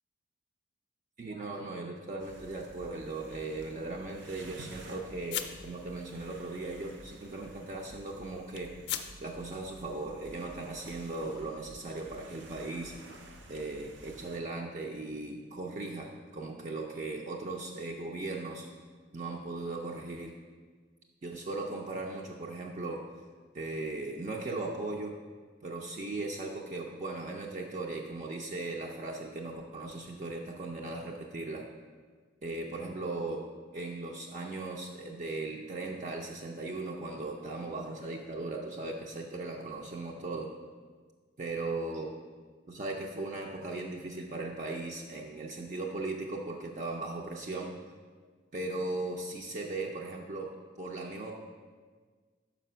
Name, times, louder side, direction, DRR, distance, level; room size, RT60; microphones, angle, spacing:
voice 1, 1.2-8.7 9.2-12.9 13.5-18.7 19.1-20.3 21.2-23.1 23.5-25.2 25.6-31.7 32.4-33.5 33.7-40.5 41.4-42.1 42.7-47.8 48.5-51.3, right 2 dB, 40° right, 0 dB, 0.4 m, -38 dB
sound 1, 2.2-14.4, right 1 dB, 65° right, 0.7 m, -51 dB
sound 2, 2.3-10.1, left 10 dB, 60° left, 0.4 m, -45 dB
5.7 x 5.0 x 5.6 m, 1.5 s
head